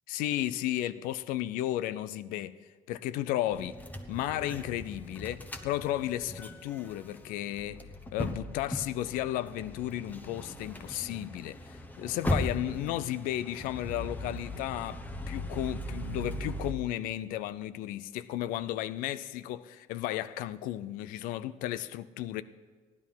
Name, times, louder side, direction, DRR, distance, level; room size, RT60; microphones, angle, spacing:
voice 1, 0.1-3.8 4.1-22.4, left 13 dB, 90° left, 0.5 m, -34 dB
sound 1, 3.5-16.7, left 1 dB, 10° left, 1.0 m, -38 dB
15.0 x 11.0 x 5.6 m
cardioid pair, 105°, 14 cm